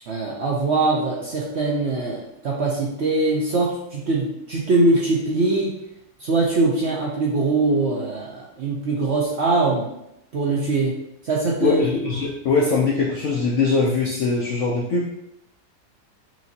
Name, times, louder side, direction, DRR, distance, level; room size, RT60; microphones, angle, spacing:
voice 1, 0.1-5.8 6.2-9.9 10.3-10.9 11.2-11.8, right 2 dB, 60° right, -4 dB, 0.8 m, -22 dB
voice 2, 11.6-15.2, left 4 dB, 65° left, -4 dB, 0.7 m, -22 dB
5.9 x 2.6 x 2.8 m, 0.82 s
omnidirectional pair, 1.8 m